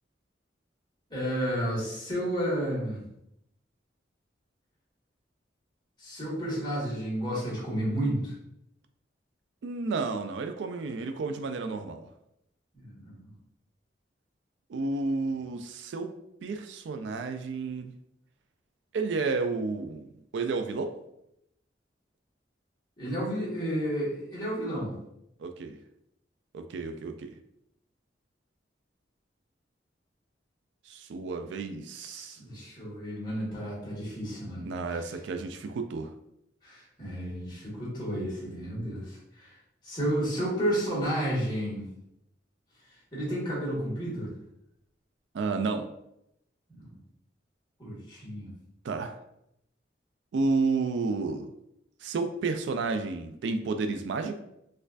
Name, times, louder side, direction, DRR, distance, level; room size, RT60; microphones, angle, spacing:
voice 1, 1.1-3.0 6.0-8.3 12.7-13.3 23.0-25.0 32.1-34.6 36.6-39.5 39.8-41.9 43.1-44.3 46.7-46.9 47.8-48.5, equal, 25° left, -6 dB, 1.5 m, -32 dB
voice 2, 9.6-12.0 14.7-16.1 16.4-17.9 18.9-20.9 25.4-25.8 26.5-27.3 30.9-32.4 34.7-36.1 45.3-45.9 48.8-49.2 50.3-51.5 52.0-54.4, right 4 dB, 75° right, 8 dB, 0.3 m, -31 dB
4.3 x 2.4 x 2.4 m, 0.79 s
head